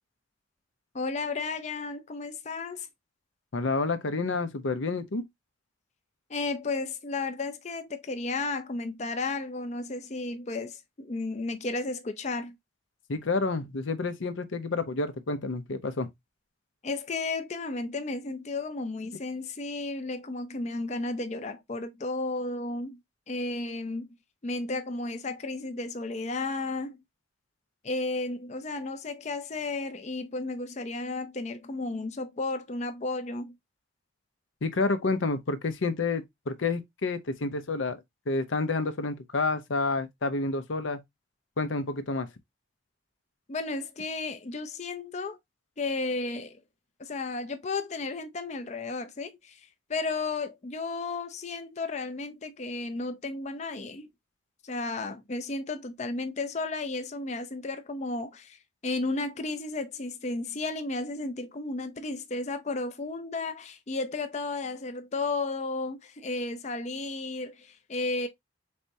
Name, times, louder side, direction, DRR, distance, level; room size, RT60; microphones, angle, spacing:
voice 1, 0.9-2.9 6.3-12.5 16.8-23.0 23.3-24.1 24.4-27.0 27.8-33.5 43.5-45.4 45.8-46.6 47.0-49.6 49.9-54.1 54.6-68.3, left 3 dB, 35° left, 0.5 m, -33 dB
voice 2, 3.5-5.2 13.1-16.1 34.6-41.0 41.6-42.3, left 3 dB, 85° left, 0.7 m, -29 dB
4.2 x 3.4 x 2.7 m
head